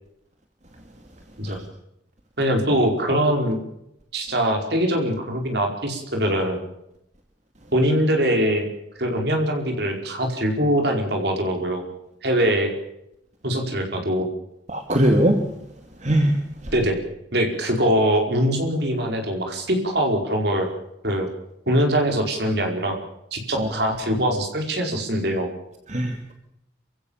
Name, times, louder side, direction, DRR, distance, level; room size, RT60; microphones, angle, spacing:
voice 1, 2.4-3.6 4.1-6.6 7.7-8.6 9.0-11.8 12.2-12.7 13.4-14.3 16.7-17.0 17.3-20.7 21.0-21.3 21.7-23.0 23.3-25.5, equal, 55° right, 3 dB, 4.9 m, -22 dB
voice 2, 14.7-15.4 16.0-16.3 23.6-23.7 25.9-26.3, right 1 dB, 35° right, 3 dB, 2.4 m, -19 dB
27.5 x 16.0 x 7.2 m, 0.82 s
head